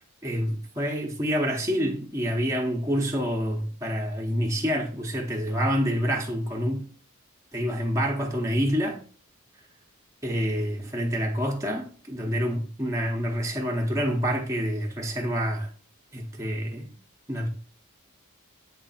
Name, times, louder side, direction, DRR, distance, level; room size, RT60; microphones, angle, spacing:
voice 1, 0.2-6.8 7.5-9.0 10.2-15.7 16.1-16.9 17.3-17.5, equal, 15° right, 0.9 m, -27 dB
7.8 x 3.4 x 4.1 m
head